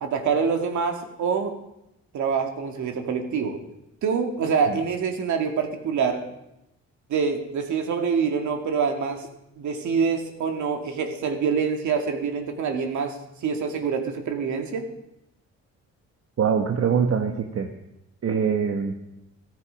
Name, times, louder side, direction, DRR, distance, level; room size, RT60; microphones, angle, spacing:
voice 1, 0.0-1.5 2.1-3.6 4.0-6.2 7.1-9.3 9.6-14.9, right 6 dB, 70° right, 4 dB, 2.3 m, -25 dB
voice 2, 16.4-17.7 18.2-19.0, right 6 dB, 50° right, 4 dB, 1.3 m, -23 dB
15.0 x 13.5 x 5.2 m, 0.87 s
cardioid pair, 90°, 30 cm